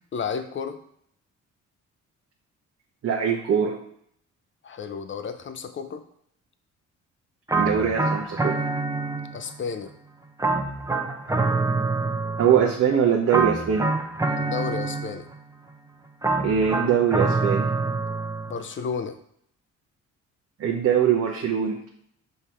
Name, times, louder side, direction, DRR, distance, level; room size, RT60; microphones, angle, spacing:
voice 1, 0.1-0.8 4.6-6.0 9.3-9.9 14.4-15.3 18.5-19.2, left 6 dB, 40° left, 9 dB, 0.7 m, -32 dB
voice 2, 3.0-3.8 7.6-8.6 12.4-13.9 16.4-17.7 20.6-21.8, right 8 dB, 55° right, 1 dB, 0.8 m, -22 dB
sound 1, 7.5-9.6 10.4-12.8 13.3-15.4 16.2-18.6, right 3 dB, 10° right, 0.7 m, -26 dB
6.7 x 3.4 x 4.4 m, 0.69 s
cardioid pair, 90°, 30 cm